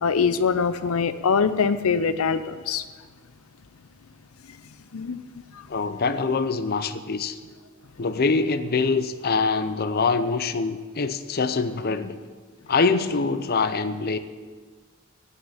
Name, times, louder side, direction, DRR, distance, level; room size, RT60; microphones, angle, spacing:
voice 1, 0.0-2.8 4.9-5.2, left 5 dB, 90° left, 12 dB, 0.6 m, -23 dB
voice 2, 5.7-7.4 8.0-12.2 12.7-14.2, left 4 dB, 45° left, 10 dB, 0.6 m, -24 dB
9.7 x 8.8 x 8.3 m, 1.5 s
head